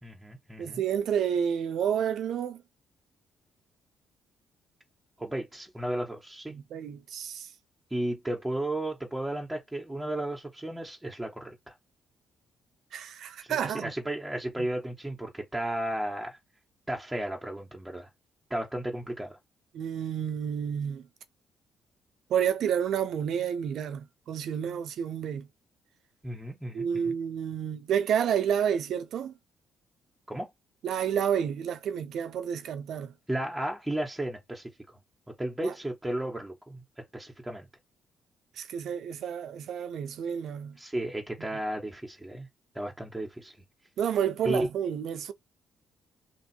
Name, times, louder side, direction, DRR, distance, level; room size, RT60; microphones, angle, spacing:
voice 1, 0.0-0.8 5.2-6.5 7.9-11.7 13.5-16.4 16.9-18.1 18.5-19.4 26.2-27.2 30.3-30.5 33.3-34.7 35.3-36.8 37.1-37.7 40.8-42.5 42.7-43.5 44.4-44.7, right 1 dB, 10° right, 1.5 m, -34 dB
voice 2, 0.6-2.6 6.5-7.5 12.9-13.9 14.6-14.7 19.7-21.1 22.3-25.5 26.7-29.3 30.8-33.1 35.6-35.7 38.6-40.8 44.0-45.3, right 8 dB, 70° right, 0.6 m, -30 dB
2.9 x 2.8 x 4.4 m
supercardioid pair, 70°, 0 cm